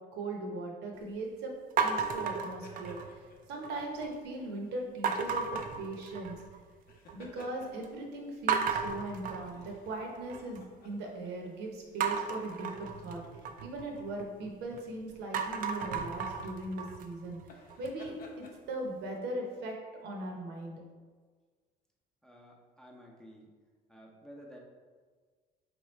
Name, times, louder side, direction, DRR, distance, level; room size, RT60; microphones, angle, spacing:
voice 1, 0.1-1.5 1.8-3.2 3.5-5.5 5.8-6.4 7.1-17.4 17.8-19.8 20.0-20.8, right 2 dB, 80° right, 1 dB, 0.8 m, -39 dB
sound 1, 1.8-3.3 3.6-4.2 5.0-6.6 6.9-7.5 7.8-7.9 8.5-10.6 12.0-14.8 15.2-18.1, right 6 dB, 55° right, 0.4 m, -34 dB
sound 2, 1.9-4.0 4.6-4.8 6.7-8.0 9.5-11.5 11.8-12.0 12.7-13.5 14.6-14.8 17.4-18.6, left 2 dB, 65° left, 0.7 m, -55 dB
voice 2, 22.2-23.5 23.9-24.6, equal, 5° left, -2 dB, 0.7 m, -52 dB
4.6 x 3.0 x 3.2 m, 1.5 s
cardioid pair, 110°, 17 cm